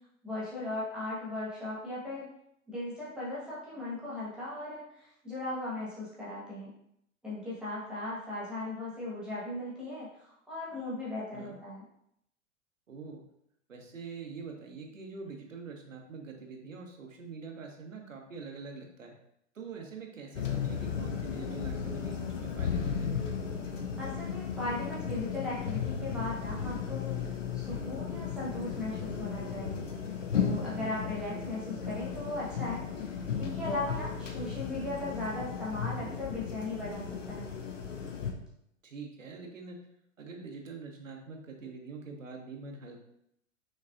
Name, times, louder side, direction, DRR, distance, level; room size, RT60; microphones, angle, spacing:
voice 1, 0.2-2.3 2.7-6.7 7.2-11.8 24.0-27.2 27.5-29.8 30.3-37.5, left 2 dB, ahead, -8 dB, 1.4 m, -38 dB
voice 2, 12.9-13.2 13.7-19.1 19.5-23.1 30.8-30.9 38.8-39.8 40.2-43.0, right 4 dB, 75° right, 2 dB, 1.1 m, -44 dB
sound 1, 20.3-38.3, left 7 dB, 70° left, 0.8 m, -35 dB
6.3 x 3.2 x 2.5 m, 0.75 s
figure-of-eight pair, 100°, 39 cm